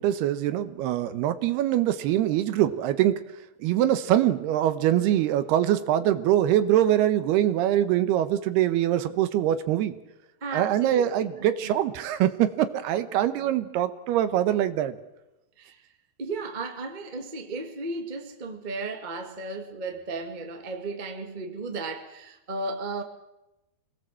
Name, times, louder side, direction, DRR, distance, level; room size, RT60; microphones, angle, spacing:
voice 1, 0.0-3.2 3.6-9.9 10.5-15.0, right 12 dB, 75° right, 2.8 m, -23 dB
voice 2, 10.4-11.3 11.6-11.8 15.6-15.8 16.2-23.0, right 3 dB, 55° right, 0.5 m, -35 dB
26.5 x 19.0 x 7.6 m
omnidirectional pair, 5.0 m